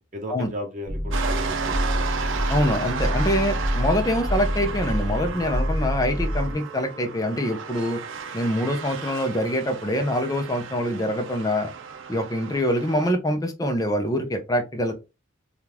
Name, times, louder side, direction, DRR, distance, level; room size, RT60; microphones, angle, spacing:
voice 1, 0.1-2.0 6.4-6.6, equal, 40° right, 1 dB, 0.9 m, -36 dB
sound 1, 0.9-6.5, equal, 5° right, 1.7 m, -26 dB
sound 2, 1.1-13.1, right 6 dB, 75° right, 0.5 m, -34 dB
voice 2, 2.5-8.0 8.3-11.7 12.1-14.9, equal, 20° left, 5 dB, 0.6 m, -25 dB
3.5 x 2.4 x 2.9 m, 0.27 s
head